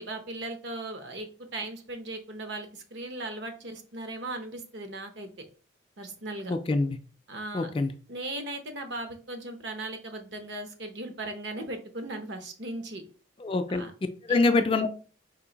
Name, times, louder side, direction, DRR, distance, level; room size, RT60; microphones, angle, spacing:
voice 1, 0.0-5.3 6.0-6.5 7.3-7.7 8.1-13.0 13.7-13.9 14.3-14.4, right 2 dB, 60° right, 6 dB, 0.8 m, -37 dB
voice 2, 6.5-7.0 7.5-7.9 13.4-13.8 14.3-15.1, left 3 dB, 25° left, 7 dB, 0.3 m, -25 dB
4.5 x 2.6 x 3.9 m, 0.38 s
head